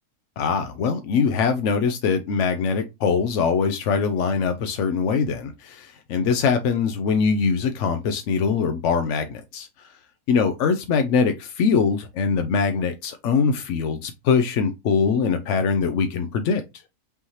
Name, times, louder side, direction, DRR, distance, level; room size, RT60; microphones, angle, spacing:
voice 1, 0.4-9.9 10.3-16.6, left 5 dB, 65° left, 0.7 m, -22 dB
5.5 x 2.8 x 3.1 m
omnidirectional pair, 1.6 m